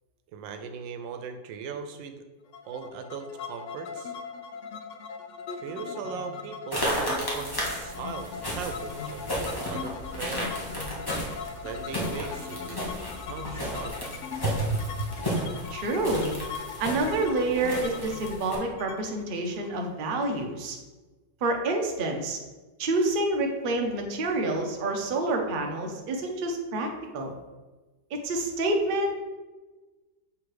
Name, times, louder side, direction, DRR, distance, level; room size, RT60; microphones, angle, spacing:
voice 1, 0.3-2.2 2.6-4.1 5.6-10.8 11.6-12.8 13.3-14.0 14.4-15.2, right 4 dB, 85° right, 7 dB, 1.3 m, -37 dB
sound 1, 2.5-20.2, left 6 dB, 90° left, 0.6 m, -39 dB
sound 2, 6.7-18.6, equal, 15° left, 1.0 m, -34 dB
voice 2, 15.7-16.3 16.8-20.8 21.4-22.4 22.8-27.3 28.2-29.1, right 2 dB, 50° right, 2 dB, 0.6 m, -28 dB
6.3 x 3.5 x 4.7 m, 1.2 s
omnidirectional pair, 2.0 m